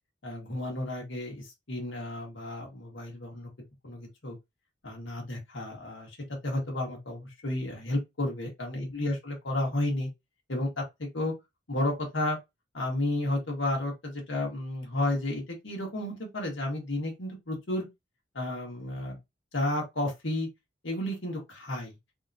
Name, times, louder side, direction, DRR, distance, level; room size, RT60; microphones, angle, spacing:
voice 1, 0.2-3.5 3.8-4.4 4.8-6.1 6.4-10.1 10.5-11.3 11.7-12.4 12.7-17.8 18.3-19.1 19.5-20.5 20.8-21.9, left 1 dB, 85° left, 1.5 m, -32 dB
3.7 x 2.9 x 2.6 m
head